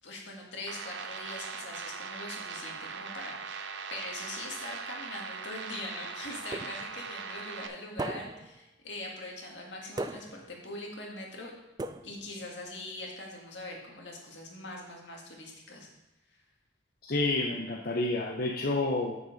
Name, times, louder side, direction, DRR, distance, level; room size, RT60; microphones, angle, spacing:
voice 1, 0.0-11.5 12.0-15.9, left 2 dB, 75° left, -1 dB, 1.9 m, -42 dB
sound 1, 0.7-7.7, right 5 dB, 75° right, 0.7 m, -40 dB
sound 2, 6.5-7.1 8.0-8.6 10.0-10.6 11.8-12.4, right 2 dB, 20° right, 0.3 m, -38 dB
voice 2, 17.0-19.2, left 2 dB, 50° left, 0 dB, 0.7 m, -29 dB
7.3 x 6.7 x 5.1 m, 0.93 s
head